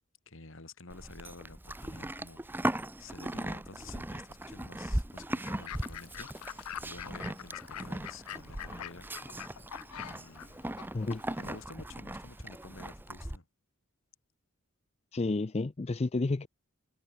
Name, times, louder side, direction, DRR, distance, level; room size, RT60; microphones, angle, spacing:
voice 1, 0.3-9.1 9.5-9.6 9.9-10.5 11.4-13.5, left 3 dB, 60° left, 2.4 m, -51 dB
Livestock farm animals working animals, 0.9-13.4, right 1 dB, 10° right, 0.8 m, -38 dB
Fowl / Bird, 5.4-11.6, left 10 dB, 90° left, 0.5 m, -45 dB
voice 2, 15.1-16.5, left 3 dB, 30° left, 0.5 m, -31 dB
head